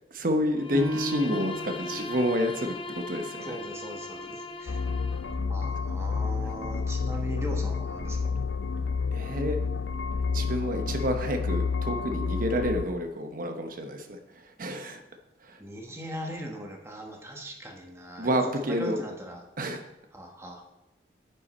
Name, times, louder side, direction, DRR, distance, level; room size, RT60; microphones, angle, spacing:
voice 1, 0.1-2.8 3.1-3.6 9.1-9.6 10.3-14.2 14.6-15.0 15.4-15.6 18.2-19.0 19.6-19.8, equal, 50° right, 5 dB, 0.9 m, -29 dB
Bowed string instrument, 0.6-5.5, left 2 dB, 30° left, 0.6 m, -39 dB
Piano, 0.7-5.9 6.4-6.5 7.1-7.6, equal, 75° right, 3.1 m, -39 dB
voice 2, 3.4-4.8 5.5-8.4 15.6-19.4 20.1-20.6, right 1 dB, 15° right, 1 dB, 1.1 m, -39 dB
sound 1, 4.7-12.8, left 5 dB, 90° left, 0.4 m, -30 dB
9.7 x 5.4 x 4.3 m, 0.93 s
head